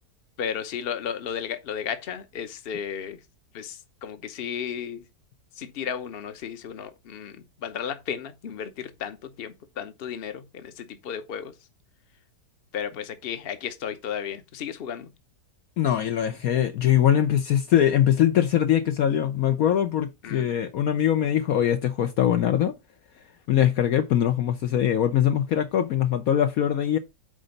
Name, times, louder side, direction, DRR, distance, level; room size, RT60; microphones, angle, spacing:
voice 1, 0.4-3.2 3.5-5.0 5.6-11.5 12.7-15.1 20.2-20.5, left 8 dB, 45° left, 1.0 m, -34 dB
voice 2, 15.8-22.7 23.5-27.0, left 10 dB, 65° left, 1.0 m, -22 dB
8.7 x 4.0 x 5.1 m
omnidirectional pair, 1.8 m